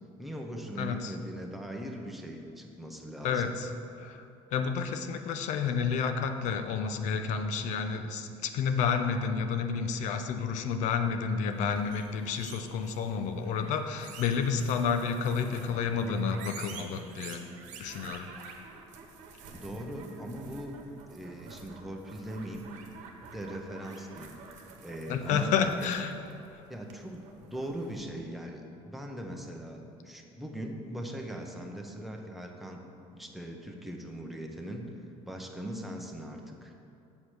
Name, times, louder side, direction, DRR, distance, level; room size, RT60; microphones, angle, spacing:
voice 1, 0.2-3.5 19.5-20.8 21.1-22.7 23.3-24.3 24.8-25.9 26.7-32.8 33.1-34.9 35.3-36.7, right 1 dB, ahead, 1 dB, 0.8 m, -40 dB
voice 2, 3.2-3.7 4.0-4.1 4.5-17.4 17.8-18.3 25.1-26.1, left 6 dB, 70° left, 8 dB, 0.7 m, -30 dB
sound 1, 11.5-28.0, right 4 dB, 70° right, 1.1 m, -49 dB
7.4 x 5.0 x 6.3 m, 2.7 s
cardioid pair, 130°, 13 cm